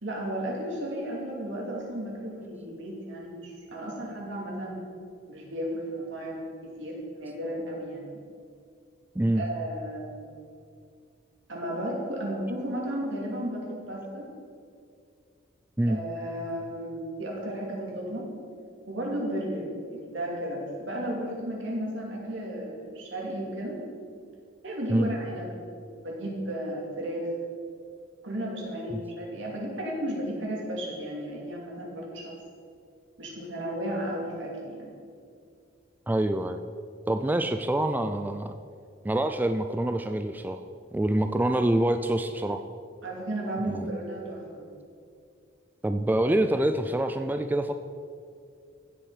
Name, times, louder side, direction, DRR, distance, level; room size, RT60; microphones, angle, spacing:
voice 1, 0.0-4.8 5.3-8.2 9.3-10.3 11.5-14.3 15.8-18.3 18.9-23.8 24.6-25.5 26.0-27.3 28.2-32.3 33.2-34.9 43.0-44.6, right 1 dB, 70° right, -2 dB, 2.7 m, -34 dB
voice 2, 36.1-36.6 37.1-38.5 39.0-40.6 40.9-42.6 43.7-43.9 45.8-47.7, right 1 dB, 10° right, 7 dB, 0.3 m, -26 dB
15.5 x 6.0 x 4.9 m, 2.3 s
head